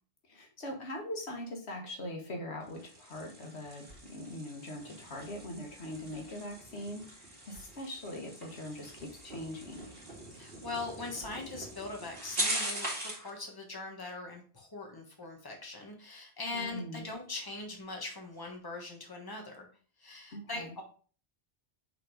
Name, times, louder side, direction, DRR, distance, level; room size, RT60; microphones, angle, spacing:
voice 1, 0.3-9.9 16.5-17.1 20.3-20.7, left 1 dB, 80° left, 2 dB, 1.6 m, -42 dB
sound 1, 2.6-13.3, right 1 dB, 60° right, 2.3 m, -41 dB
voice 2, 10.3-19.7 20.0-20.8, left 3 dB, 20° left, 1 dB, 1.4 m, -41 dB
5.7 x 3.8 x 4.8 m, 0.40 s
omnidirectional pair, 1.1 m